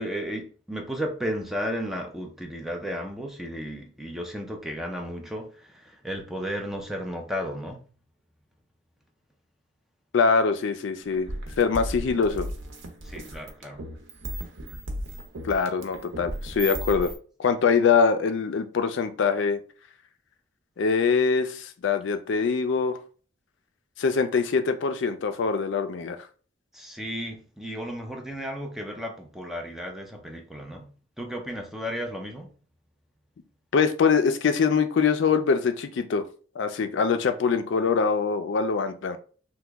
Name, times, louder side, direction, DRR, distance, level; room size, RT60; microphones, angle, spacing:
voice 1, 0.0-7.8 13.0-13.8 26.7-30.9 31.2-32.5, equal, ahead, 2 dB, 0.4 m, -34 dB
voice 2, 10.1-11.3 11.6-12.5 15.4-17.1 17.4-19.6 20.8-23.0 24.0-26.2 33.7-36.2 36.6-39.2, left 5 dB, 65° left, 9 dB, 0.4 m, -23 dB
sound 1, 11.1-17.2, equal, 80° right, 0.7 m, -35 dB
2.9 x 2.2 x 3.4 m, 0.39 s
head